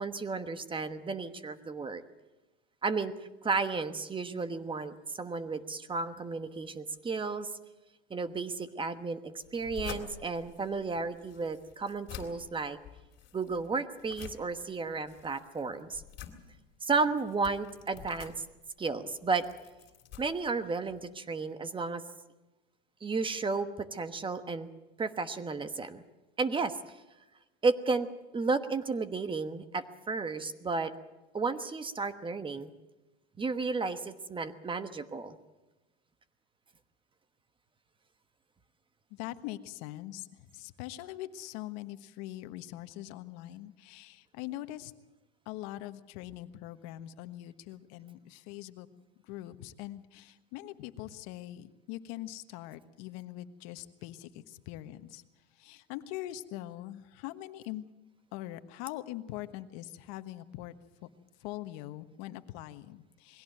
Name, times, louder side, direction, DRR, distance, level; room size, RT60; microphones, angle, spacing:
voice 1, 0.0-2.0 2.8-7.5 8.1-12.8 13.3-16.0 16.8-18.4 18.8-19.5 20.2-22.0 23.0-24.7 25.0-26.0 26.4-26.8 27.6-28.1 28.3-30.9 31.3-32.7 33.4-35.4, right 4 dB, 15° right, 11 dB, 1.2 m, -33 dB
sound 1, 9.4-21.2, left 10 dB, 40° left, 3.2 m, -49 dB
voice 2, 39.1-44.9 45.4-48.9 49.2-55.2 55.6-57.8 58.3-60.7 61.4-63.4, left 15 dB, 60° left, 10 dB, 1.3 m, -42 dB
21.0 x 17.0 x 7.9 m, 1.1 s
supercardioid pair, 110°, 29 cm